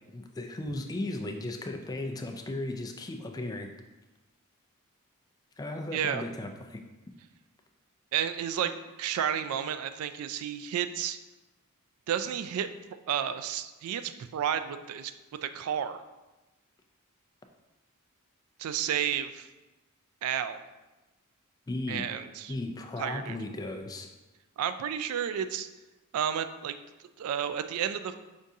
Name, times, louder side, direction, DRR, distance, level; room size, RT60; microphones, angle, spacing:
voice 1, 0.1-3.7 5.6-6.8 21.7-22.0 22.5-24.1, left 2 dB, 15° left, 4 dB, 0.3 m, -36 dB
voice 2, 5.9-6.2 8.1-11.2 12.1-12.7 13.1-15.1 15.4-16.0 18.6-19.5 20.2-20.6 21.9-22.5 23.0-23.4 24.6-25.7 26.1-26.8 27.2-28.1, right 9 dB, 90° right, 13 dB, 0.3 m, -31 dB
5.3 x 3.5 x 2.7 m, 1.1 s
head